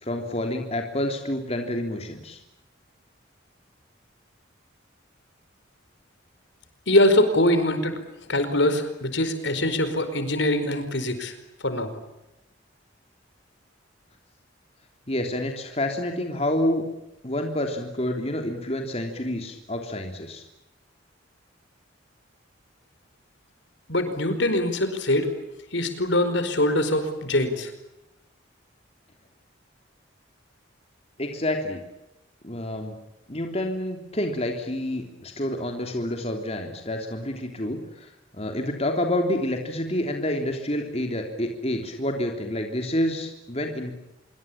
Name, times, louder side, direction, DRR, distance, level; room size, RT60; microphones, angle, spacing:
voice 1, 0.0-2.4 15.1-16.8 17.2-20.4 31.2-31.8 32.4-33.0 33.3-43.9, left 1 dB, 30° left, 3 dB, 3.3 m, -28 dB
voice 2, 6.9-8.0 8.3-11.3 11.6-11.9 23.9-25.3 25.7-27.7, left 1 dB, 65° left, 9 dB, 4.8 m, -23 dB
27.0 x 24.0 x 8.8 m, 0.90 s
head